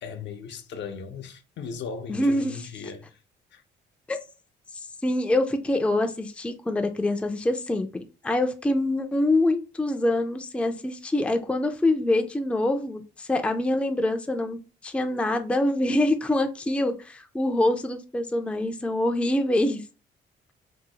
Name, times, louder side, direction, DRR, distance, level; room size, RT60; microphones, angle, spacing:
voice 1, 0.0-3.2 3.5-3.6, left 5 dB, 65° left, 0.6 m, -37 dB
voice 2, 2.1-2.5 4.1-4.2 5.0-14.6 14.8-19.8, left 1 dB, 5° left, 0.4 m, -25 dB
2.8 x 2.0 x 3.9 m
cardioid pair, 90°, 20 cm